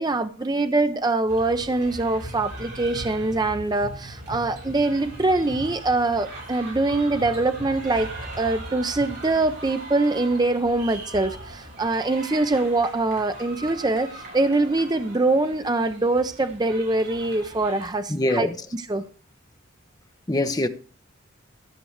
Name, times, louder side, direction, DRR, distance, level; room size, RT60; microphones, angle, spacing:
voice 1, 0.0-18.5 18.9-19.0, right 2 dB, 20° right, 0.6 m, -23 dB
sound 1, 1.3-17.9, right 1 dB, 50° right, 7.4 m, -39 dB
voice 2, 18.1-18.6 20.3-20.7, left 1 dB, 20° left, 0.9 m, -23 dB
14.0 x 6.7 x 6.4 m
head